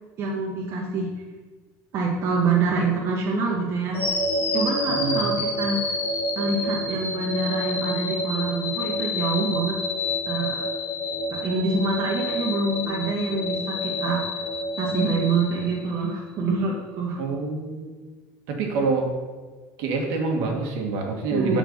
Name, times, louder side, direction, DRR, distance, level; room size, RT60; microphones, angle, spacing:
voice 1, 0.2-1.1 1.9-4.0 4.5-6.0 6.4-9.8 10.3-10.6 11.3-14.2 14.8-17.2 21.3-21.6, right 3 dB, 40° right, -3 dB, 1.2 m, -26 dB
sound 1, 3.9-16.1, left 1 dB, 30° left, 2.4 m, -28 dB
voice 2, 4.9-5.2 17.2-17.9 18.5-19.1 19.8-21.6, right 4 dB, 65° right, 1 dB, 1.8 m, -26 dB
7.7 x 4.5 x 7.2 m, 1.4 s
cardioid pair, 160°, 7 cm